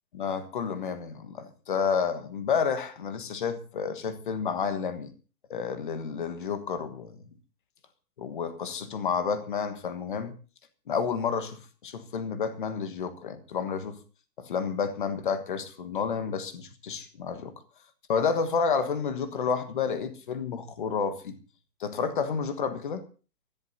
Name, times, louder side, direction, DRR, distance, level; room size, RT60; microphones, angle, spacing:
voice 1, 0.1-5.1 5.5-7.2 8.2-10.3 10.9-14.0 14.4-17.6 18.1-21.4 21.8-23.0, left 6 dB, 30° left, 10 dB, 1.4 m, -30 dB
24.5 x 14.5 x 2.7 m, 0.36 s
hypercardioid pair, 175°, 50 cm